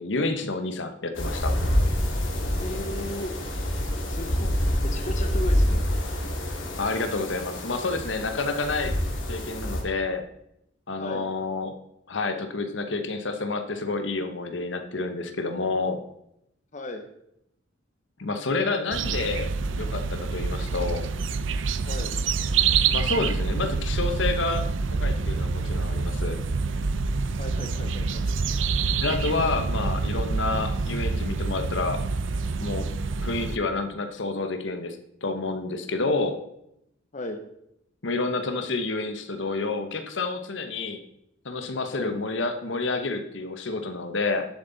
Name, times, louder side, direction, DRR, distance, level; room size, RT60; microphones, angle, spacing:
voice 1, 0.0-1.5 6.8-8.9 9.3-10.3 10.9-11.7 12.1-16.0 18.2-19.5 19.8-21.1 22.9-24.6 25.0-26.4 29.0-32.0 32.6-32.9 33.2-36.4 38.0-41.0 41.4-44.5, left 3 dB, 65° left, 8 dB, 1.1 m, -29 dB
sound 1, 1.1-9.8, equal, 85° left, 2.4 m, -27 dB
voice 2, 2.6-3.3 4.0-5.8 11.0-11.3 16.7-17.1 21.9-22.1 27.4-28.2 37.1-37.4 41.9-42.1, left 1 dB, 40° left, 5 dB, 0.8 m, -36 dB
sound 2, 18.9-33.6, right 4 dB, 75° right, 0.6 m, -27 dB
11.5 x 7.4 x 4.0 m, 0.79 s
head